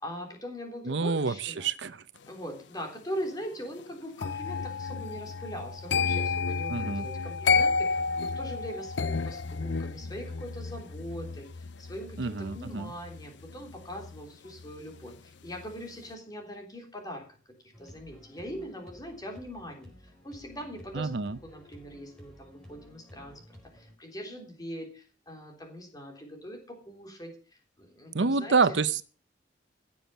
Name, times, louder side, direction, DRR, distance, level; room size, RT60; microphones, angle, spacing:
voice 1, 0.0-1.7 2.3-17.3 17.8-19.9 20.2-21.1 21.4-23.4 23.7-27.4 27.8-28.8, equal, 20° left, 3.4 m, -41 dB
voice 2, 0.8-2.0 6.7-7.1 12.2-12.9 20.9-21.4 28.1-29.0, right 4 dB, 70° right, 0.7 m, -27 dB
sound 1, 4.2-15.2 15.4-15.8, left 4 dB, 70° left, 0.6 m, -31 dB
sound 2, 17.7-23.9, left 1 dB, 5° left, 4.3 m, -53 dB
16.5 x 7.2 x 6.7 m
head